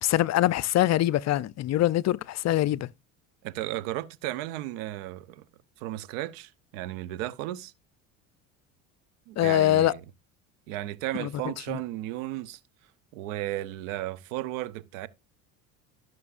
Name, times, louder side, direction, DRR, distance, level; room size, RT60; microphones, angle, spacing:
voice 1, 0.0-2.9 9.4-9.9 11.2-11.3 11.7-11.8, left 14 dB, 45° left, 0.6 m, -23 dB
voice 2, 3.4-5.4 5.8-7.7 9.3-10.0 10.7-12.6 13.1-15.1, right 15 dB, 80° right, 1.0 m, -34 dB
15.5 x 6.3 x 2.5 m
supercardioid pair, 85°, 39 cm